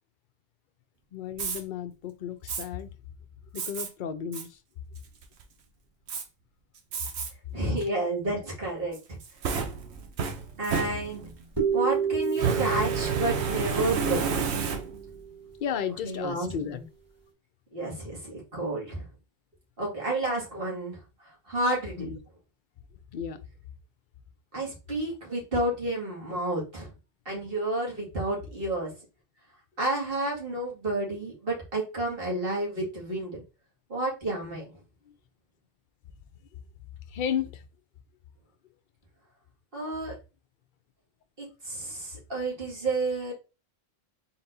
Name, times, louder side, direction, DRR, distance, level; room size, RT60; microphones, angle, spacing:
voice 1, 1.1-2.9 3.5-4.6 15.6-16.8 22.0-22.2 23.1-23.4 37.1-37.6, left 8 dB, 55° left, 0.7 m, -33 dB
Fire, 1.3-1.6 2.5-2.6 3.6-3.9 4.3-4.5 5.0-5.4 6.1-6.2 6.9-7.3 7.8-7.9 8.9-11.4 12.3-15.2, right 6 dB, 85° right, 1.0 m, -30 dB
voice 2, 7.5-9.2 10.6-11.3 11.7-14.2 16.0-16.5 17.7-19.1 19.8-21.0 21.5-22.1 24.5-26.9 27.3-28.9 29.8-33.4 33.9-34.7 39.7-40.2 41.4-43.3, right 1 dB, 60° right, 2.2 m, -30 dB
sound 1, 11.6-15.6, right 7 dB, 15° right, 2.8 m, -31 dB
4.1 x 3.9 x 2.6 m
omnidirectional pair, 1.1 m